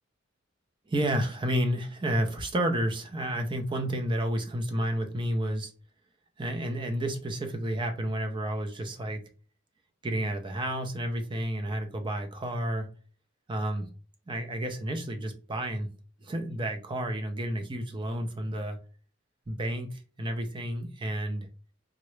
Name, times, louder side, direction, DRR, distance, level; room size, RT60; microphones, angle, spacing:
voice 1, 0.9-5.7 6.4-9.2 10.0-12.9 13.5-13.8 14.3-15.9 16.2-18.8 19.5-21.5, right 1 dB, 25° right, 0.5 m, -31 dB
3.7 x 2.1 x 3.1 m
head